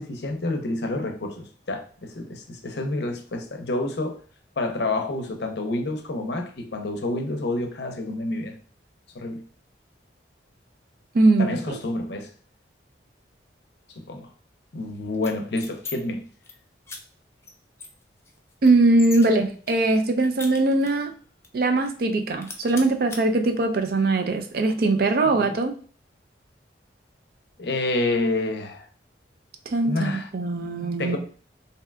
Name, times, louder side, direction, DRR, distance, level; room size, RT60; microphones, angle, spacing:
voice 1, 0.0-4.2 4.6-8.6 9.1-9.4 11.4-12.3 14.1-14.3 14.7-16.3 25.3-25.5 27.6-28.9 29.8-30.3 31.0-31.2, left 2 dB, 65° left, 0.5 m, -28 dB
voice 2, 11.1-11.8 18.6-21.1 21.5-25.7 29.7-31.2, right 2 dB, 55° right, 0.4 m, -21 dB
sound 1, 15.1-15.9 16.3-16.5 16.9-17.0 17.4-17.5 17.8-19.3 19.7-21.1 21.4-21.5 21.9-22.1 22.4-23.2, left 4 dB, 15° left, 0.3 m, -39 dB
2.7 x 2.2 x 3.3 m
head